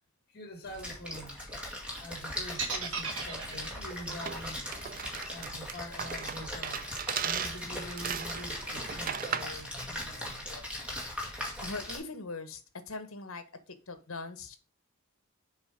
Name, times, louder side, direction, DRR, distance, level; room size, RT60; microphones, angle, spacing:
voice 1, 0.3-1.4 2.0-4.7 5.3-6.9 7.2-10.9, equal, 45° left, 2.1 m, -45 dB
Splash splatter, 0.7-12.0, left 1 dB, 5° right, 2.1 m, -39 dB
sound 1, 2.6-6.6, right 5 dB, 70° right, 1.6 m, -38 dB
sound 2, 4.2-9.6, right 7 dB, 40° right, 0.5 m, -37 dB
voice 2, 11.6-12.6 12.9-13.4 13.9-14.6, left 3 dB, 65° left, 1.1 m, -40 dB
7.1 x 4.8 x 5.1 m
head